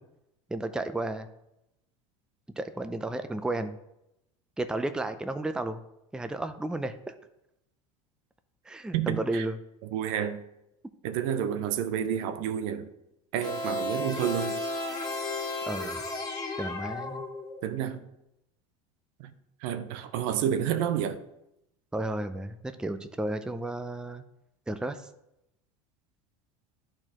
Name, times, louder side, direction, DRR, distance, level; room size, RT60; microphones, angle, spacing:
voice 1, 0.5-1.3 2.6-3.8 4.6-5.8 6.1-7.1 8.7-9.6 15.7-16.0 16.6-17.2 21.9-24.2 24.7-25.0, right 2 dB, 5° right, 0.5 m, -33 dB
voice 2, 8.9-9.5 9.9-10.4 11.0-12.9 13.3-14.6 17.6-18.0 19.2-19.3 19.6-21.2, right 9 dB, 65° right, 0.7 m, -29 dB
sound 1, 13.4-17.7, left 2 dB, 20° left, 2.0 m, -34 dB
11.5 x 4.4 x 3.0 m
hypercardioid pair, 85°, 18 cm